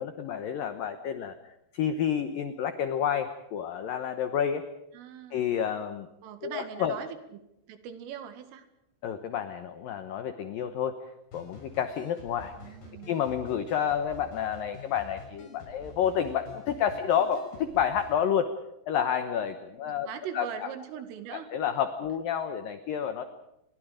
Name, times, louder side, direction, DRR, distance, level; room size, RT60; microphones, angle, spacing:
voice 1, 0.0-1.4 1.7-4.7 5.3-6.1 6.4-7.0 9.0-11.0 11.3-12.8 13.1-18.5 18.9-20.1 20.3-20.7 21.3-23.2, left 8 dB, 80° left, 9 dB, 2.0 m, -29 dB
voice 2, 4.9-5.5 6.2-7.2 7.7-8.7 12.6-13.2 19.8-21.5, right 9 dB, 85° right, 9 dB, 4.5 m, -41 dB
sound 1, 11.3-18.2, left 2 dB, 55° left, 8.2 m, -48 dB
29.0 x 23.0 x 5.1 m, 0.87 s
omnidirectional pair, 5.7 m